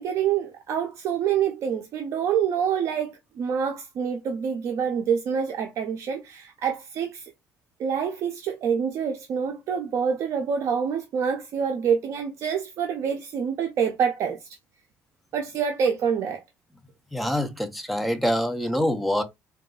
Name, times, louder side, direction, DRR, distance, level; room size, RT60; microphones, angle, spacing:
voice 1, 0.0-7.3 7.8-14.5 15.3-16.4, right 7 dB, 60° right, 0.4 m, -26 dB
voice 2, 17.1-19.2, equal, ahead, 0.5 m, -25 dB
3.7 x 2.3 x 2.3 m
cardioid pair, 130°, 6 cm